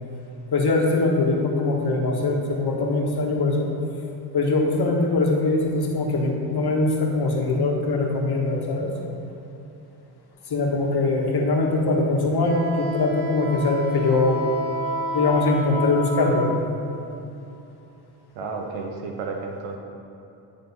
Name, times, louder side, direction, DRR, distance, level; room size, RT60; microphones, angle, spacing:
voice 1, 0.5-3.7 4.3-8.9 10.5-14.4 15.1-16.6, left 2 dB, 50° left, 0 dB, 1.6 m, -22 dB
Wind instrument woodwind instrument, 12.4-16.6, left 1 dB, 60° right, 1.7 m, -30 dB
voice 2, 18.3-19.8, right 4 dB, 80° right, 2 dB, 1.0 m, -32 dB
10.5 x 3.7 x 5.5 m, 2.9 s
supercardioid pair, 60°, 49 cm